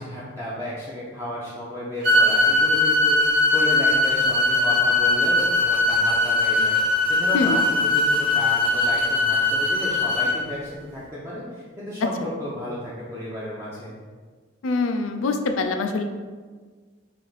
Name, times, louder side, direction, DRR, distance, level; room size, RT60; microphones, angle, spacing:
voice 1, 0.0-6.8 7.1-13.9, equal, 15° right, -9 dB, 0.5 m, -33 dB
sound 1, 2.0-10.3, left 2 dB, 45° right, 1.1 m, -20 dB
voice 2, 14.6-16.0, left 3 dB, 80° left, 6 dB, 0.4 m, -24 dB
3.3 x 2.6 x 3.9 m, 1.5 s
head